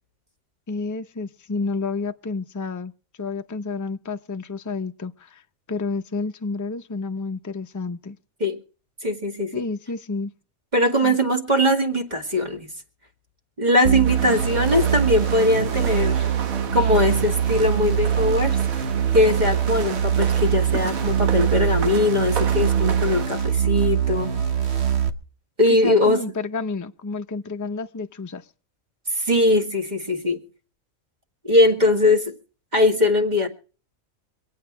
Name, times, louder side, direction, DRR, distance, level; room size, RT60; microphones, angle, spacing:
voice 1, 0.7-2.9 3.2-5.4 5.7-8.2 9.5-10.3 11.0-11.2 25.8-28.5, left 4 dB, 30° left, 0.3 m, -30 dB
voice 2, 9.0-9.5 10.7-12.7 13.6-16.3 16.7-18.6 19.1-24.3 25.6-26.2 29.1-30.4 31.4-32.3 32.7-33.5, left 1 dB, 30° right, 2.2 m, -20 dB
sound 1, 13.9-25.1, right 9 dB, 50° right, 1.2 m, -23 dB
sound 2, 14.0-23.3, right 7 dB, 75° right, 1.5 m, -34 dB
25.0 x 8.6 x 4.6 m
omnidirectional pair, 1.5 m